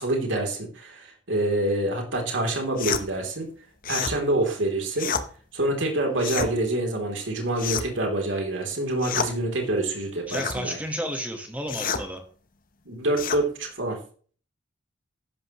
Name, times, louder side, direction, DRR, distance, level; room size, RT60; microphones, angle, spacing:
voice 1, 0.0-3.5 3.9-5.1 5.5-10.8 12.8-14.0, right 1 dB, 75° right, 2 dB, 3.4 m, -26 dB
sound 1, 2.8-3.1 3.8-4.2 5.0-5.3 6.2-6.5 7.6-8.0 9.0-9.3 10.3-10.6 11.7-12.1 13.2-13.4, left 6 dB, 45° left, 1.0 m, -29 dB
voice 2, 10.3-12.2, equal, 10° right, 4 dB, 1.5 m, -32 dB
14.0 x 11.0 x 3.2 m, 0.42 s
head